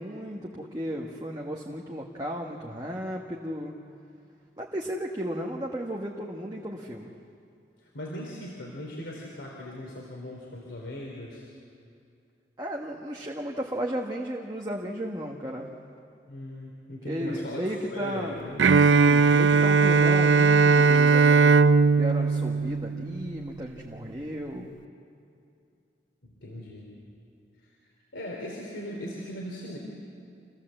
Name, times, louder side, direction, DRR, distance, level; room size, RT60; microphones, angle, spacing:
voice 1, 0.0-3.7 4.6-7.1 12.6-15.7 17.0-18.4 18.8-21.6 21.9-24.7, equal, 20° right, -2 dB, 1.3 m, -34 dB
voice 2, 7.8-11.5 16.3-18.6 26.4-26.9 27.6-27.7 28.1-29.8, left 1 dB, 85° left, -3 dB, 3.4 m, -38 dB
Bowed string instrument, 18.6-23.5, right 4 dB, 80° right, 0.5 m, -19 dB
27.5 x 15.5 x 7.7 m, 2.5 s
head